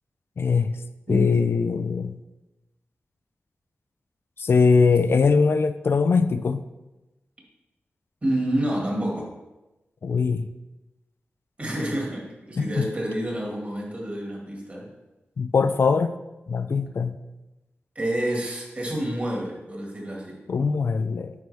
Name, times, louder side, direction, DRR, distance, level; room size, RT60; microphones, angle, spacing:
voice 1, 0.4-0.7 1.1-2.2 4.4-6.6 10.0-10.5 12.6-12.9 15.4-16.2 16.5-17.2 20.5-21.3, left 5 dB, 65° left, 10 dB, 0.3 m, -21 dB
voice 2, 1.1-1.5 8.2-9.3 11.6-14.9 18.0-20.4, right 1 dB, 35° right, -2 dB, 1.9 m, -28 dB
9.3 x 4.6 x 3.4 m, 1.0 s
wide cardioid pair, 115°, 4 cm